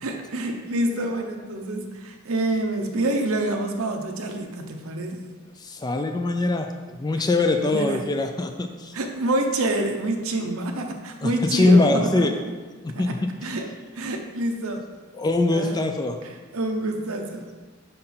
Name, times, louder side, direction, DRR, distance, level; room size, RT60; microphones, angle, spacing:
voice 1, 0.0-5.3 7.6-8.1 8.9-12.4 12.9-13.1 13.4-13.7 13.9-14.9 15.4-15.8 16.2-17.5, right 1 dB, 80° right, 4 dB, 0.8 m, -27 dB
voice 2, 5.6-8.9 11.2-12.4 12.8-13.3 15.1-16.2, left 2 dB, 20° left, 5 dB, 0.3 m, -22 dB
5.3 x 4.3 x 5.6 m, 1.4 s
head